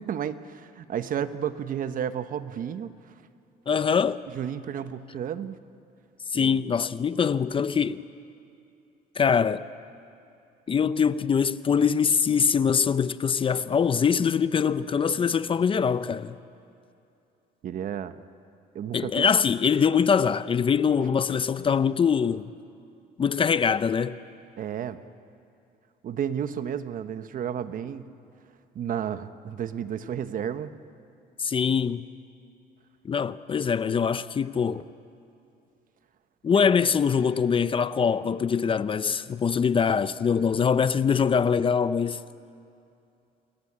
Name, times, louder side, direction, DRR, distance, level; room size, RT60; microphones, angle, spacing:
voice 1, 0.0-2.9 4.3-5.6 6.3-6.6 17.6-18.1 18.7-19.3 24.6-25.0 26.0-28.1 28.7-30.7, right 9 dB, 55° right, 1.1 m, -32 dB
voice 2, 3.7-4.2 6.3-8.0 9.2-9.7 10.7-16.4 18.9-22.5 23.2-24.2 31.4-32.0 33.0-34.8 36.4-42.2, left 6 dB, 30° left, 0.6 m, -23 dB
28.5 x 21.5 x 8.8 m
cardioid pair, 110°, 17 cm